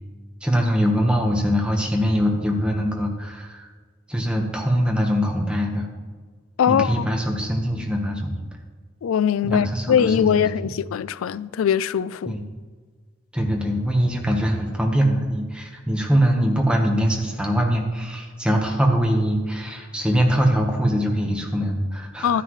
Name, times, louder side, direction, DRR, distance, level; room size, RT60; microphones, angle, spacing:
voice 1, 0.4-3.7 4.1-5.9 6.7-8.4 9.4-10.7 12.3-12.4 13.3-22.4, equal, 5° right, 1.2 m, -22 dB
voice 2, 6.6-7.0 9.0-12.4 22.2-22.4, left 8 dB, 85° left, 0.3 m, -21 dB
12.0 x 10.0 x 3.2 m
head